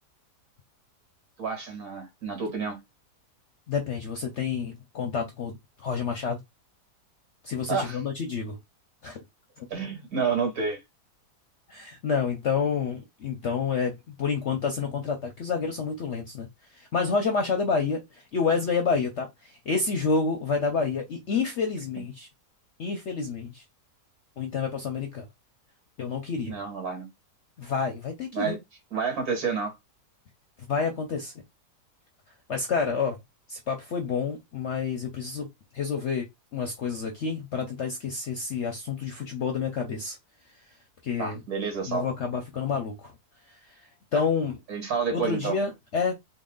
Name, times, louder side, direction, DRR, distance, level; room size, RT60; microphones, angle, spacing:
voice 1, 1.4-2.8 7.7-8.0 9.7-10.8 26.5-27.1 28.3-28.6 28.9-29.7 41.2-42.1 44.7-45.5, right 5 dB, 60° right, 2.2 m, -29 dB
voice 2, 3.7-5.6 5.8-6.4 7.4-8.6 9.0-9.2 9.6-9.7 11.7-16.5 16.8-22.3 22.8-23.6 24.4-25.3 26.0-26.5 27.6-28.6 30.7-31.3 32.5-33.2 33.5-35.5 35.7-36.3 36.5-40.2 41.0-41.4 41.9-43.1 44.1-44.6 45.1-46.1, left 5 dB, 60° left, 0.8 m, -29 dB
3.9 x 2.1 x 3.8 m
omnidirectional pair, 1.8 m